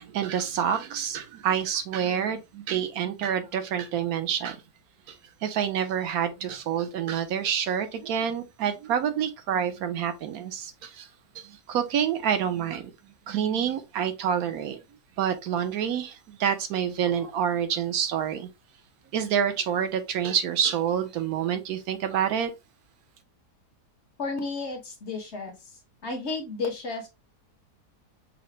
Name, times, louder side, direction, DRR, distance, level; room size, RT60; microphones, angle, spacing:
voice 1, 0.0-4.6 5.1-5.2 5.4-11.1 11.3-14.8 15.2-18.5 19.1-22.5, right 8 dB, 65° right, 1.1 m, -27 dB
voice 2, 24.2-25.5 26.0-27.1, left 3 dB, 50° left, 1.0 m, -32 dB
5.7 x 2.1 x 3.1 m
omnidirectional pair, 1.7 m